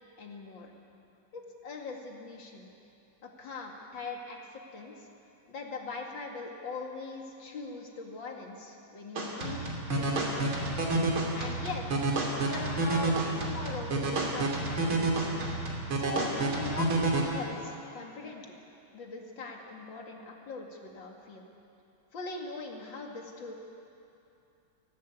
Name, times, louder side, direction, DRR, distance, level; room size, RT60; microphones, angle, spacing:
voice 1, 0.2-0.7 1.3-2.7 3.2-5.1 5.5-10.4 11.3-12.0 12.5-15.3 16.0-18.5 18.9-21.5 22.1-23.5, left 3 dB, 65° left, 1 dB, 2.8 m, -41 dB
sound 1, 9.2-17.2, right 2 dB, 90° right, 3.7 m, -29 dB
29.5 x 12.5 x 8.5 m, 2.7 s
omnidirectional pair, 2.2 m